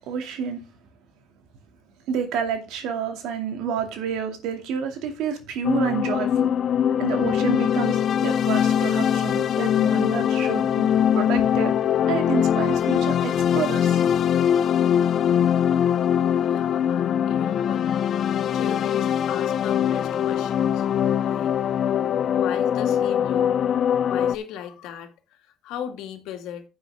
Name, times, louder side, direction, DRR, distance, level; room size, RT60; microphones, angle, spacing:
voice 1, 0.1-0.6 2.1-6.6 7.0-11.8 12.1-14.0, right 7 dB, 80° right, 2.4 m, -29 dB
sound 1, 5.6-24.4, left 9 dB, 50° left, 0.5 m, -22 dB
voice 2, 16.4-17.8 18.5-20.9 21.2-21.5 22.3-23.6 24.0-26.6, left 9 dB, 80° left, 2.2 m, -37 dB
10.0 x 8.0 x 3.6 m
cardioid pair, 110°, 0 cm